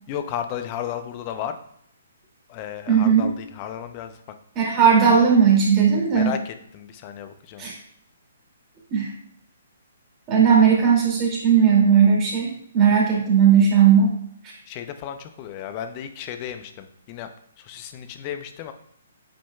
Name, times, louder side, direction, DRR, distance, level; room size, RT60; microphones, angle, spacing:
voice 1, 0.1-1.6 2.5-4.1 5.0-5.1 6.1-7.6 14.7-17.3 17.6-18.7, left 9 dB, 35° left, 8 dB, 0.8 m, -33 dB
voice 2, 2.9-3.3 4.5-6.3 7.6-7.7 8.9-9.1 10.3-14.1, right 7 dB, 25° right, -3 dB, 2.6 m, -17 dB
8.7 x 5.0 x 2.4 m, 0.69 s
hypercardioid pair, 135°, 0 cm